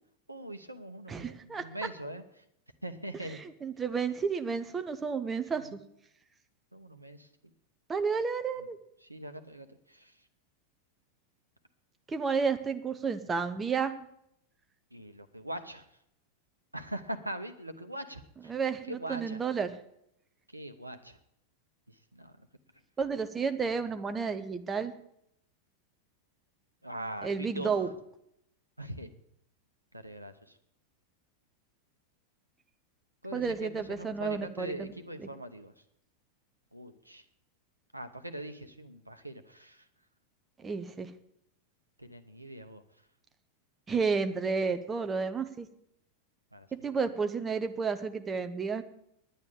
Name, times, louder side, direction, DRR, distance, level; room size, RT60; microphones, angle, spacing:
voice 1, 0.3-2.2 2.8-3.4 5.6-5.8 6.7-7.3 9.0-10.1 14.9-15.8 16.7-18.5 18.9-19.4 20.5-21.2 21.9-22.3 26.8-27.9 28.8-29.1 29.9-30.6 33.2-35.7 36.7-37.2 37.9-39.8 42.0-42.8 46.5-46.7, right 1 dB, 85° right, 9 dB, 1.0 m, -42 dB
voice 2, 1.1-1.6 3.3-5.8 7.9-8.8 12.1-13.9 18.5-19.8 23.0-24.9 27.2-27.9 33.3-34.9 35.2-35.3 40.6-41.1 43.9-45.7 46.8-48.8, right 5 dB, 20° right, 9 dB, 0.9 m, -31 dB
10.0 x 9.5 x 8.5 m, 0.76 s
figure-of-eight pair, 90°, 0 cm